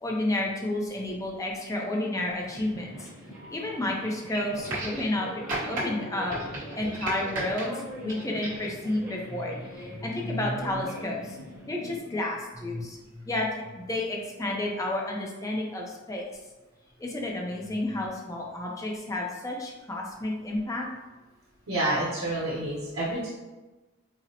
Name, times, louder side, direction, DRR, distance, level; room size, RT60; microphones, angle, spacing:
voice 1, 0.0-3.1 3.5-5.3 5.6-6.4 6.8-16.2 17.0-20.9, left 1 dB, 15° left, -1 dB, 0.4 m, -31 dB
sound 1, 2.4-12.0, equal, 15° right, 1.0 m, -42 dB
sound 2, 4.6-5.2 5.5-5.8 6.3-7.7 8.1-8.7 9.8-9.9, right 2 dB, 40° right, 1.0 m, -34 dB
voice 2, 21.7-23.3, right 1 dB, 85° right, -8 dB, 0.9 m, -28 dB
4.0 x 2.0 x 2.7 m, 1.2 s
head